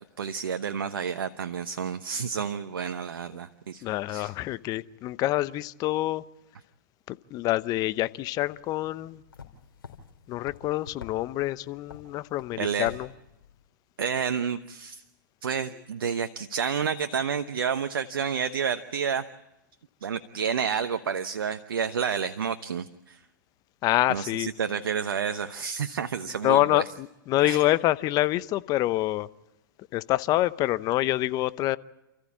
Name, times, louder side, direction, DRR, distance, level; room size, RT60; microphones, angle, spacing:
voice 1, 0.2-4.3 12.6-12.9 14.0-15.0 15.4-19.3 20.0-23.2 24.1-26.8 27.4-27.6, right 7 dB, 80° right, 1.0 m, -30 dB
voice 2, 3.8-6.2 7.1-9.2 10.3-13.1 23.8-24.5 26.4-29.3 29.9-31.8, left 16 dB, 35° left, 0.8 m, -26 dB
sound 1, 8.4-13.6, left 6 dB, 85° left, 3.5 m, -49 dB
29.5 x 14.5 x 8.5 m
hypercardioid pair, 120°, 12 cm